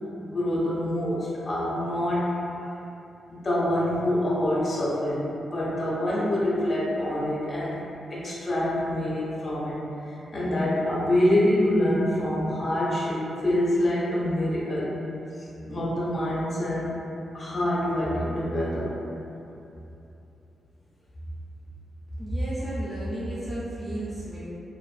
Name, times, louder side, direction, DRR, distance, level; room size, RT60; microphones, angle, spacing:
voice 1, 0.3-2.3 3.3-7.8 8.1-14.9 15.4-16.9 17.3-18.9, left 1 dB, 35° left, -7 dB, 0.6 m, -26 dB
voice 2, 22.2-24.4, right 1 dB, 15° right, -11 dB, 0.6 m, -31 dB
2.6 x 2.5 x 2.4 m, 2.9 s
cardioid pair, 85°, 0 cm